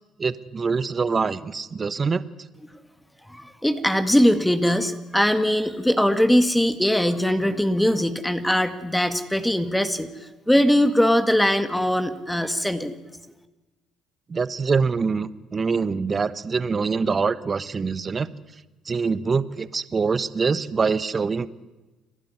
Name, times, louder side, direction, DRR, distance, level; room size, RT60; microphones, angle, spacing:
voice 1, 0.2-2.2 14.3-18.3 18.9-21.5, right 5 dB, 35° right, 15 dB, 1.2 m, -24 dB
voice 2, 3.3-10.1 10.5-12.9, equal, 5° left, 9 dB, 1.9 m, -21 dB
30.0 x 12.0 x 9.7 m, 1.1 s
hypercardioid pair, 65°, 0 cm